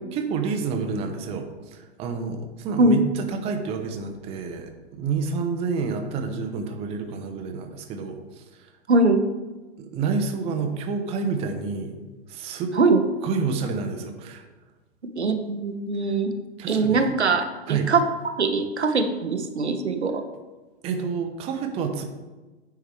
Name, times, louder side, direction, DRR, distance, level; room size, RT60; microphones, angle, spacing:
voice 1, 0.1-8.7 9.8-12.0 12.3-12.7 13.2-14.4 16.6-17.1 17.7-17.9 20.8-22.0, right 5 dB, 20° right, 5 dB, 0.6 m, -29 dB
voice 2, 8.9-9.2 12.8-13.0 15.2-16.3 16.7-18.0 18.4-20.2, right 3 dB, 75° right, 7 dB, 0.8 m, -21 dB
9.0 x 4.6 x 3.3 m, 1.2 s
figure-of-eight pair, 105°, 34 cm